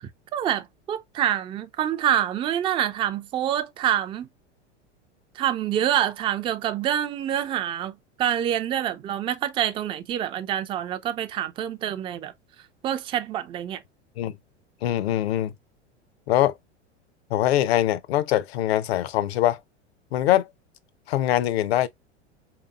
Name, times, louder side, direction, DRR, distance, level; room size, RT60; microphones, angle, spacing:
voice 1, 0.0-4.3 5.3-12.3 12.8-13.8, right 10 dB, 15° right, 0.4 m, -26 dB
voice 2, 14.8-15.5 16.3-16.5 17.3-19.6 20.1-20.5 21.1-21.9, left 13 dB, 60° left, 0.7 m, -22 dB
4.8 x 3.0 x 2.4 m
figure-of-eight pair, 90°, 35 cm